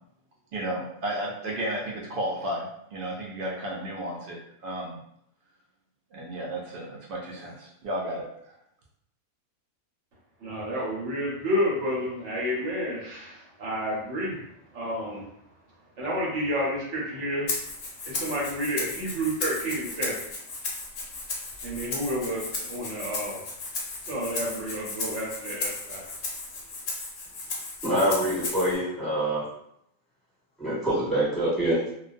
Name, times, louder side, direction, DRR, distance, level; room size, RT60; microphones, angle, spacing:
voice 1, 0.5-5.0 6.1-8.3, right 1 dB, 90° right, -3 dB, 0.4 m, -33 dB
voice 2, 10.4-14.4 14.7-15.3 16.0-17.5 18.1-20.2 21.6-23.4 24.1-26.1, equal, 65° right, -5 dB, 0.9 m, -30 dB
Rattle (instrument), 17.5-28.8, left 3 dB, 60° left, 0.8 m, -35 dB
voice 3, 27.8-29.4 30.6-31.8, right 1 dB, ahead, -10 dB, 1.1 m, -25 dB
2.3 x 2.2 x 2.5 m, 0.74 s
omnidirectional pair, 1.5 m